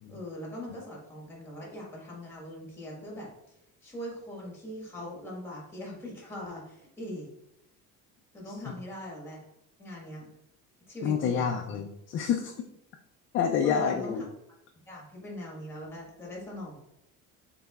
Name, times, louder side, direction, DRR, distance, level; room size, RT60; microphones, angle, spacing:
voice 1, 0.1-7.3 8.3-9.4 9.8-10.3 10.9-11.5 13.6-14.2 14.7-16.8, equal, 5° left, -2 dB, 1.4 m, -41 dB
voice 2, 11.0-12.5 13.3-14.3, left 7 dB, 40° left, 3 dB, 0.4 m, -28 dB
5.5 x 4.1 x 2.3 m, 0.83 s
cardioid pair, 165°, 34 cm